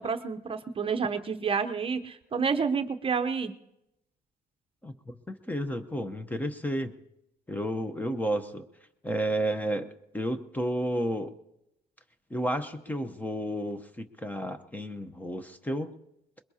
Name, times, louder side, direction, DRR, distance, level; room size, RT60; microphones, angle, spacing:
voice 1, 0.0-3.5, right 5 dB, 30° right, 9 dB, 0.8 m, -29 dB
voice 2, 5.3-6.9 7.5-8.6 9.0-9.9 10.1-11.3 12.3-15.9, equal, 10° left, 9 dB, 0.8 m, -31 dB
23.0 x 21.5 x 2.8 m, 0.87 s
cardioid pair, 110°, 17 cm